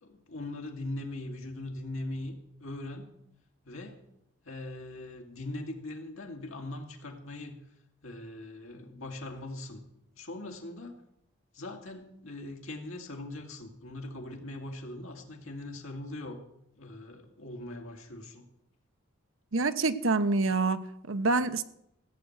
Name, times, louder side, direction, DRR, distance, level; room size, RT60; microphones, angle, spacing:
voice 1, 0.0-2.3 2.6-3.1 3.6-4.0 4.4-7.6 8.0-9.8 10.1-11.0 11.5-16.4 16.8-18.4, left 2 dB, 85° left, 2.3 m, -40 dB
voice 2, 19.5-21.6, right 3 dB, 80° right, 0.9 m, -27 dB
15.5 x 7.9 x 8.0 m
head